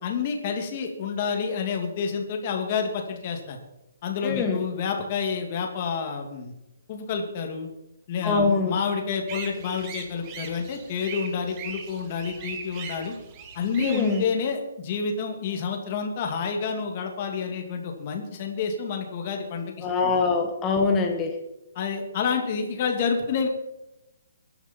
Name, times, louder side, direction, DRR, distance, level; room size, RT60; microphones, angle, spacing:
voice 1, 0.0-3.6 4.0-6.5 6.9-7.7 8.1-13.1 13.5-20.1 21.7-23.5, left 6 dB, 25° left, 3 dB, 2.5 m, -29 dB
voice 2, 4.2-4.6 8.2-8.8 13.8-14.2 19.8-21.3, left 4 dB, 10° left, 3 dB, 1.8 m, -23 dB
sound 1, 9.3-14.2, right 6 dB, 20° right, 1.6 m, -39 dB
21.5 x 11.0 x 4.5 m, 0.92 s
hypercardioid pair, 175°, 0 cm